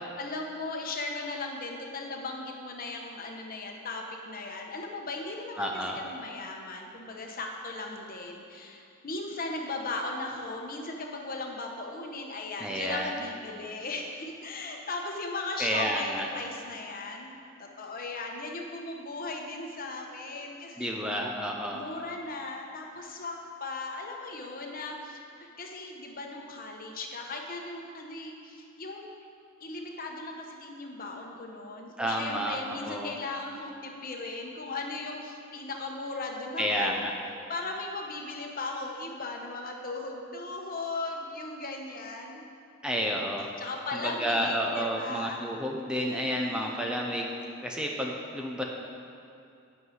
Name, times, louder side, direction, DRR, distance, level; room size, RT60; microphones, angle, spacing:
voice 1, 0.0-17.3 17.6-20.9 21.7-29.1 29.6-37.0 37.5-42.4 43.6-45.4 46.0-46.8, left 3 dB, 45° left, 1 dB, 1.0 m, -37 dB
voice 2, 5.6-6.0 12.6-13.2 15.6-16.3 20.8-21.8 32.0-33.1 36.6-37.1 42.8-43.5 43.9-47.3 47.6-48.6, equal, 5° right, 0 dB, 0.6 m, -30 dB
8.5 x 5.6 x 7.8 m, 2.6 s
head